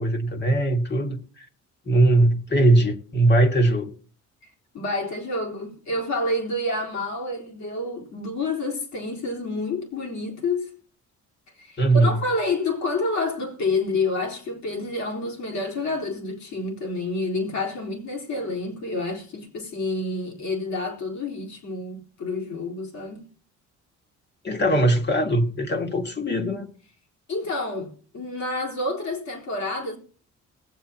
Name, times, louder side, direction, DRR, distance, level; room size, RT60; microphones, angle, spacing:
voice 1, 0.0-1.5 1.9-3.9 11.8-12.2 24.4-26.7, right 1 dB, 35° left, 2.1 m, -20 dB
voice 2, 4.4-10.7 11.5-23.3 27.3-30.0, left 2 dB, 70° left, 4.1 m, -29 dB
21.0 x 7.8 x 2.9 m
cardioid pair, 90°, 30 cm